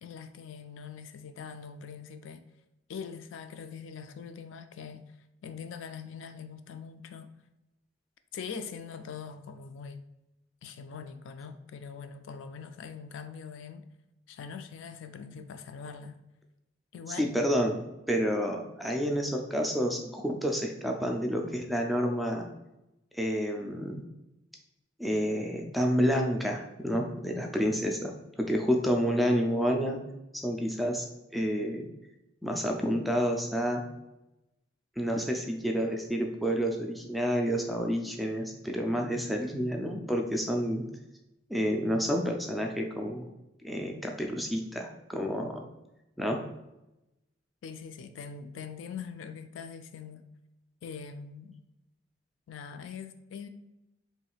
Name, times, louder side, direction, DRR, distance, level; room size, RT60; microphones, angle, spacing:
voice 1, 0.0-2.5 2.9-5.0 5.4-7.3 8.3-10.0 10.6-13.9 14.3-16.2 16.9-17.3 47.6-50.3 50.8-51.6 52.5-53.5, left 6 dB, 80° left, 9 dB, 0.3 m, -42 dB
voice 2, 17.1-17.8 18.1-22.5 23.1-23.9 25.0-28.1 28.4-30.0 30.4-31.1 31.3-31.9 32.4-33.8 35.0-40.8 41.5-43.2 43.6-45.6 46.2-46.4, equal, ahead, 1 dB, 0.3 m, -29 dB
4.5 x 3.1 x 2.3 m, 0.95 s
head